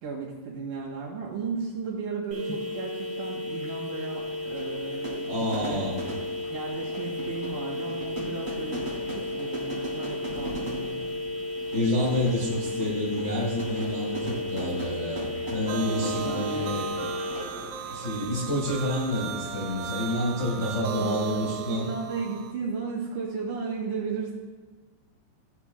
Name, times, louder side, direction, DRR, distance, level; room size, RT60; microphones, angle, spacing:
voice 1, 0.0-5.9 6.5-8.8 9.1-11.1 14.5-14.8 15.9-17.1 21.0-24.3, right 5 dB, 60° right, -4 dB, 3.3 m, -35 dB
sound 1, 2.3-17.4, left 2 dB, 30° right, 2.1 m, -34 dB
Fire / Fireworks, 4.2-18.2, right 1 dB, 15° right, 1.9 m, -40 dB
voice 2, 5.3-6.0 11.7-16.9 17.9-21.9, left 1 dB, 65° left, -6 dB, 0.6 m, -29 dB
sound 2, 15.7-22.5, right 8 dB, 90° right, 3.0 m, -36 dB
15.5 x 5.9 x 2.2 m, 1.3 s
omnidirectional pair, 5.3 m